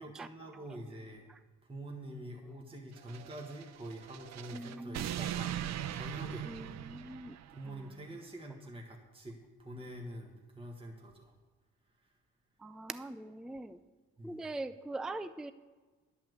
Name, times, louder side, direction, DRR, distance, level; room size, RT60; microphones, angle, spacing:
voice 1, 0.0-1.3 1.6-5.6 5.9-6.5 7.5-11.3 12.0-12.1 14.2-14.4, right 1 dB, 20° right, 1 dB, 1.5 m, -46 dB
sound 1, 3.0-7.7, right 11 dB, 60° right, 0.5 m, -40 dB
voice 2, 4.5-5.1 6.4-7.4 7.7-7.9 12.6-13.8 14.2-15.5, right 2 dB, ahead, 13 dB, 0.4 m, -42 dB
10.5 x 5.8 x 7.8 m, 1.3 s
cardioid pair, 90°, 30 cm